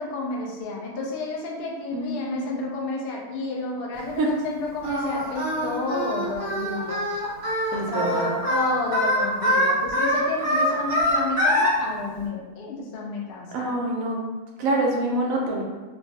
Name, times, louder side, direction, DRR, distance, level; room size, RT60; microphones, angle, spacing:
voice 1, 0.0-7.0 7.9-13.8, left 3 dB, 75° left, -3 dB, 0.5 m, -31 dB
voice 2, 1.9-2.7 4.2-4.3 7.7-8.4 13.5-14.2 14.6-15.6, right 2 dB, 70° right, -1 dB, 0.9 m, -26 dB
Singing, 4.8-11.7, equal, 25° right, 1.0 m, -24 dB
3.1 x 2.2 x 2.7 m, 1.2 s
omnidirectional pair, 1.6 m